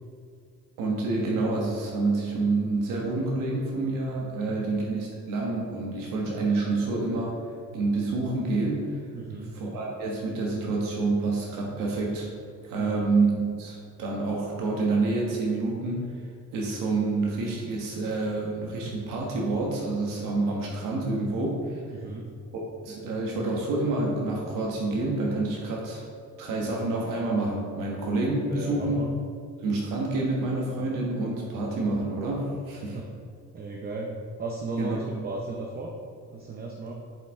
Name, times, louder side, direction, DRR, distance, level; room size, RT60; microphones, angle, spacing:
voice 1, 0.8-7.4 7.7-8.9 9.5-12.3 12.6-16.1 16.5-21.8 22.5-26.0 26.4-29.0 29.6-33.0 34.8-35.0, right 3 dB, 90° right, -2 dB, 1.3 m, -28 dB
voice 2, 9.1-9.5 12.8-13.1 21.9-22.3 28.4-29.1 32.7-33.0 33.5-34.1 34.4-35.9 36.3-36.9, right 3 dB, 30° right, 0 dB, 0.6 m, -35 dB
7.9 x 5.7 x 3.6 m, 2.2 s
cardioid pair, 165°, 32 cm